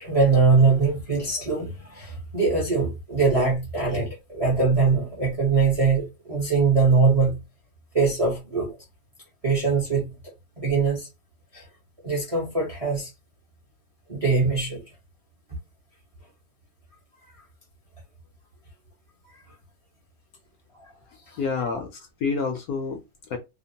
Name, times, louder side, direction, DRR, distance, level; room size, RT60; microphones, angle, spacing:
voice 1, 0.0-7.4 7.9-8.7 9.4-10.1 10.6-11.1 11.5-11.6 12.0-13.1 14.1-14.8 17.1-17.2 20.8-20.9 21.3-21.4, right 4 dB, 35° right, 0.6 m, -22 dB
voice 2, 21.1-23.4, left 5 dB, 70° left, 0.9 m, -29 dB
2.9 x 2.0 x 2.7 m
omnidirectional pair, 1.9 m